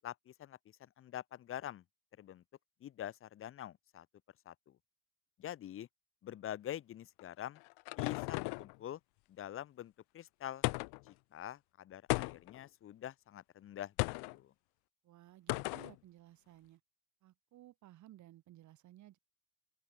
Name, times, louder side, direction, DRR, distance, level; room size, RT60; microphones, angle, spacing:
voice 1, 0.0-1.8 2.2-2.4 2.8-4.1 4.4-4.8 5.4-5.9 6.2-7.6 8.0-9.0 9.3-10.6 11.0-13.9 14.2-14.5, left 11 dB, 35° left, 1.6 m, -46 dB
sound 1, 7.2-8.8 10.6-11.1 12.1-12.6 14.0-14.4 15.5-15.9, left 31 dB, 75° left, 0.8 m, -36 dB
voice 2, 15.0-16.8 17.2-19.2, right 14 dB, 45° right, 7.8 m, -58 dB
open air
cardioid pair, 170°, 39 cm